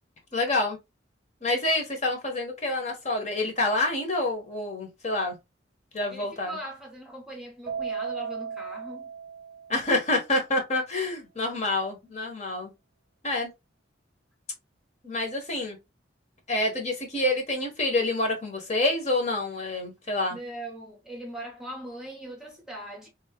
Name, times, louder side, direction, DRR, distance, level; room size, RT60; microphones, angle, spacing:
voice 1, 0.3-0.8 1.4-5.3 5.9-6.5 9.7-12.7 13.2-13.5 15.0-15.8 16.5-20.4, left 2 dB, 40° left, 1.2 m, -27 dB
voice 2, 6.1-9.1 20.3-23.1, right 1 dB, 5° right, 0.8 m, -40 dB
Keyboard (musical), 7.7-10.1, right 6 dB, 45° right, 0.6 m, -36 dB
3.4 x 2.9 x 3.0 m
head